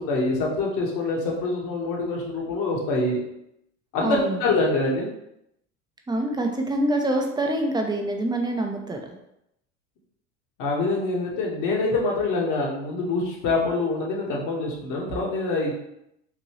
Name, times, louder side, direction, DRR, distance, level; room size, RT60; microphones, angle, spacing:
voice 1, 0.0-3.2 3.9-5.1 10.6-15.7, left 3 dB, 50° left, -2 dB, 1.5 m, -25 dB
voice 2, 4.0-4.4 6.1-9.0, right 1 dB, 10° right, 2 dB, 0.6 m, -25 dB
4.0 x 2.6 x 3.1 m, 0.79 s
hypercardioid pair, 85°, 39 cm